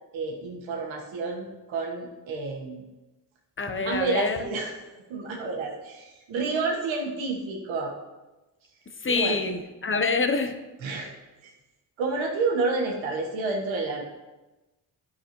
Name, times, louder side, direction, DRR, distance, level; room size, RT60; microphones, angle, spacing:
voice 1, 0.1-2.8 3.8-4.7 5.1-7.9 9.2-9.4 10.8-11.1 11.4-11.5 12.0-14.0, right 3 dB, 90° right, -1 dB, 1.6 m, -29 dB
voice 2, 3.6-4.5 9.0-10.6, left 4 dB, 25° left, 8 dB, 0.9 m, -26 dB
10.5 x 6.9 x 3.1 m, 1.1 s
supercardioid pair, 55°, 46 cm